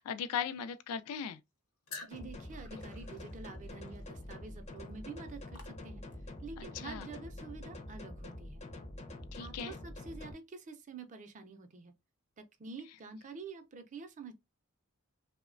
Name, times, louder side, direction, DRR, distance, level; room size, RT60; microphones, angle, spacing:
voice 1, 0.0-1.4 6.6-7.1 9.3-9.7, left 7 dB, 90° left, 0.3 m, -38 dB
sound 1, 1.9-6.3, left 4 dB, 70° left, 0.8 m, -52 dB
sound 2, 2.1-10.3, left 1 dB, 30° left, 0.5 m, -46 dB
voice 2, 2.1-6.1 6.4-8.6 9.4-11.9 12.4-14.3, right 4 dB, 35° right, 0.4 m, -48 dB
3.0 x 2.1 x 2.4 m
head